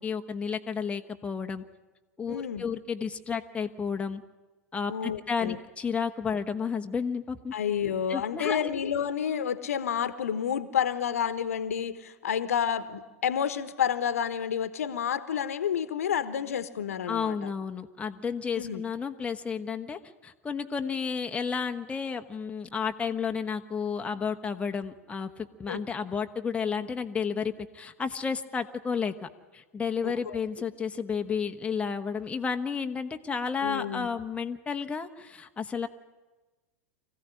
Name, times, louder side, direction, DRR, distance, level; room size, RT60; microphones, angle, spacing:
voice 1, 0.0-1.6 2.2-4.2 4.7-7.5 8.1-8.7 17.1-35.9, left 6 dB, 15° left, 5 dB, 1.3 m, -32 dB
voice 2, 2.3-2.6 4.9-5.6 7.5-17.3 18.6-18.8 25.7-25.8 30.0-30.4 33.6-34.1, left 8 dB, 70° left, 14 dB, 1.3 m, -30 dB
25.0 x 15.5 x 9.9 m, 1.2 s
figure-of-eight pair, 90°, 8 cm